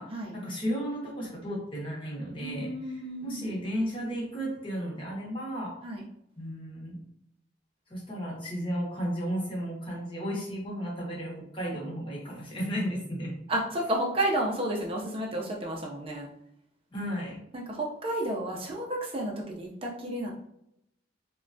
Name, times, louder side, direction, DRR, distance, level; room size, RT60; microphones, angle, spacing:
voice 1, 0.3-2.7 3.2-5.7 6.4-7.0 7.9-13.3 16.9-17.4, equal, 30° left, -4 dB, 0.9 m, -33 dB
voice 2, 2.4-3.4 5.8-6.0 13.5-16.3 17.5-20.3, right 1 dB, 30° right, -1 dB, 0.4 m, -31 dB
3.1 x 2.2 x 2.5 m, 0.77 s
head